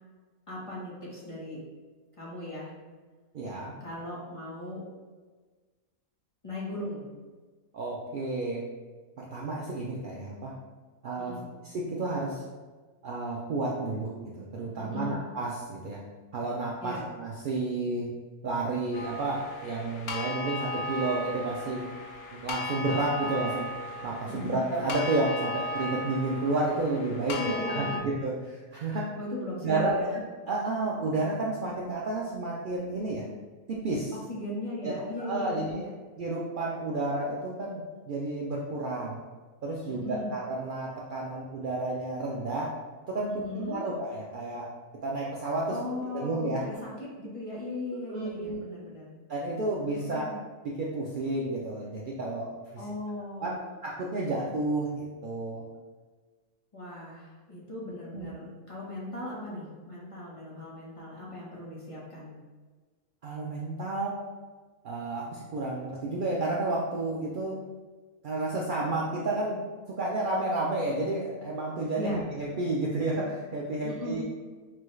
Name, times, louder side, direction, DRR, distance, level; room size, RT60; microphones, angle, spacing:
voice 1, 0.5-1.6 2.2-2.7 3.8-4.8 6.4-7.1 11.2-11.5 14.8-15.2 16.8-17.1 24.3-24.6 27.4-28.1 29.2-30.1 34.3-35.9 39.9-40.3 43.3-43.8 45.7-49.1 49.9-50.4 52.8-53.7 56.7-62.3 72.0-72.2 73.8-74.2, left 1 dB, 25° left, -6 dB, 1.0 m, -38 dB
voice 2, 3.3-3.7 7.7-8.6 9.2-10.5 11.0-11.4 11.6-12.4 13.0-16.0 16.3-18.1 18.4-21.9 22.3-23.7 24.0-27.4 27.7-29.1 29.6-33.3 33.7-34.1 34.8-35.9 36.2-39.2 39.6-42.7 43.1-44.7 45.0-45.8 46.1-46.6 48.1-48.6 49.3-50.3 50.6-52.8 53.4-55.6 58.1-58.3 63.2-64.2 64.8-67.6 68.2-74.2, right 2 dB, 85° right, -3 dB, 0.4 m, -31 dB
sound 1, 18.9-28.0, left 2 dB, 85° left, 1.2 m, -36 dB
5.9 x 2.3 x 3.1 m, 1.4 s
omnidirectional pair, 1.5 m